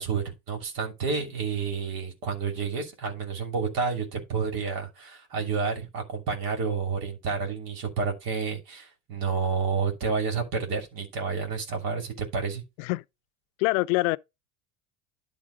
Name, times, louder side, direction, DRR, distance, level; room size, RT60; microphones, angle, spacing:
voice 1, 0.0-12.6, right 5 dB, 55° right, 2.9 m, -30 dB
voice 2, 13.6-14.2, left 22 dB, 75° left, 0.5 m, -24 dB
10.5 x 3.5 x 5.0 m
hypercardioid pair, 80°, 40 cm